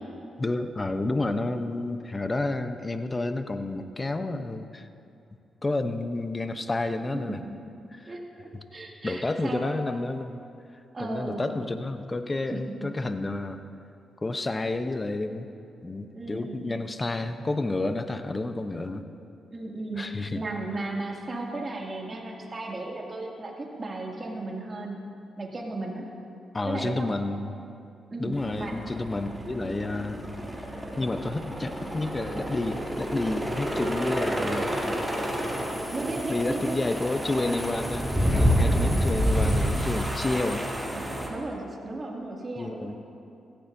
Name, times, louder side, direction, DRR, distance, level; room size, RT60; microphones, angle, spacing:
voice 1, 0.4-4.9 5.6-7.4 7.9-8.1 8.5-8.6 9.0-10.4 11.0-13.6 14.2-15.5 15.8-19.0 19.9-20.4 26.5-27.6 28.2-30.2 31.0-34.7 36.3-40.7 42.6-43.0, left 2 dB, 30° left, 8 dB, 0.8 m, -30 dB
voice 2, 8.1-9.7 10.9-11.5 12.5-12.9 16.1-16.6 19.5-25.0 25.4-26.0 26.6-27.1 28.1-28.8 35.9-36.8 41.3-43.0, right 2 dB, 40° right, -2 dB, 2.5 m, -35 dB
sound 1, 28.3-41.3, equal, ahead, 2.8 m, -28 dB
16.5 x 15.0 x 2.7 m, 2.6 s
supercardioid pair, 60°, 0 cm